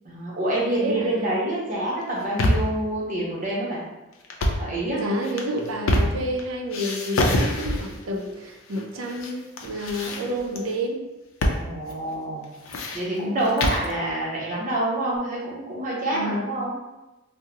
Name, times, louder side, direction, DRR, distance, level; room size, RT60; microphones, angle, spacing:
voice 1, 0.0-3.8 4.6-5.0 11.6-12.4 12.9-16.8, right 1 dB, 40° right, -5 dB, 0.8 m, -27 dB
voice 2, 0.7-1.3 4.9-11.1 13.1-13.5 16.1-16.5, equal, 85° right, 2 dB, 0.5 m, -30 dB
sound 1, 2.0-2.8 4.2-4.7 5.2-6.4 6.7-8.0 8.7-9.3 9.6-10.6 11.4-11.6 11.9-12.0 12.4-13.9, left 1 dB, 90° left, 0.4 m, -25 dB
3.6 x 2.0 x 2.8 m, 1.0 s
head